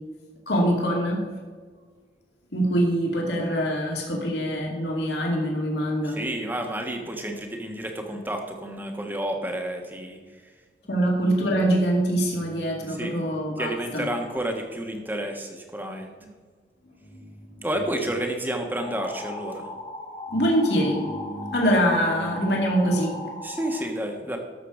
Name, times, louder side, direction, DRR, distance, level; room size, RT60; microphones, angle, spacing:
voice 1, 0.5-1.3 2.5-6.2 10.9-14.1 17.1-17.2 17.5-17.7 20.3-23.3, equal, 75° left, -1 dB, 2.5 m, -24 dB
voice 2, 6.0-10.4 12.9-13.1 13.6-16.1 17.6-19.7 23.4-24.4, right 1 dB, 10° right, 3 dB, 1.2 m, -30 dB
sound 1, 18.8-23.8, left 2 dB, 25° left, 1.6 m, -38 dB
13.5 x 6.8 x 4.9 m, 1.5 s
head